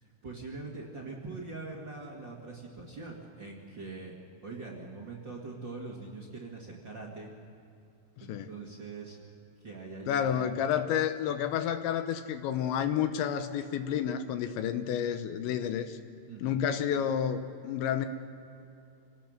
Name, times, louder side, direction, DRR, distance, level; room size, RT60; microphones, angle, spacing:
voice 1, 0.0-4.1 4.4-7.3 8.2-9.2 9.6-10.7 16.3-16.6, right 3 dB, 45° right, -3 dB, 1.4 m, -43 dB
voice 2, 8.2-8.5 10.1-16.0 16.4-18.1, left 9 dB, 75° left, 9 dB, 2.9 m, -30 dB
27.5 x 18.0 x 6.5 m, 2.7 s
omnidirectional pair, 5.7 m